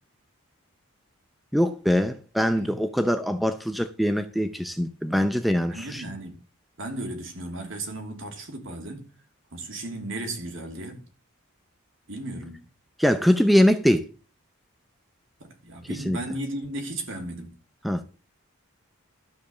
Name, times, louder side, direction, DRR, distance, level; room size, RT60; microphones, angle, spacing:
voice 1, 1.5-6.0 13.0-14.0 15.9-16.2 17.8-18.0, equal, ahead, 0.6 m, -23 dB
voice 2, 5.7-6.3 6.8-9.1 9.5-11.0 12.1-12.6 15.4-17.5, right 1 dB, 60° right, 3.1 m, -35 dB
12.5 x 5.3 x 7.1 m
head